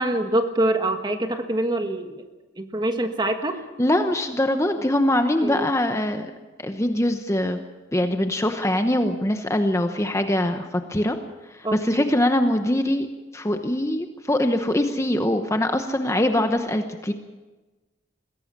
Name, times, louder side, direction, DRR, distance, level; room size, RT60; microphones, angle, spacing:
voice 1, 0.0-2.2 2.6-3.6 5.4-5.7 11.6-12.0, right 1 dB, 20° right, 6 dB, 1.5 m, -25 dB
voice 2, 3.8-6.3 6.6-7.6 7.9-11.2 11.5-13.1 13.3-17.1, left 1 dB, 15° left, 7 dB, 0.9 m, -23 dB
22.0 x 16.5 x 7.4 m, 1.2 s
head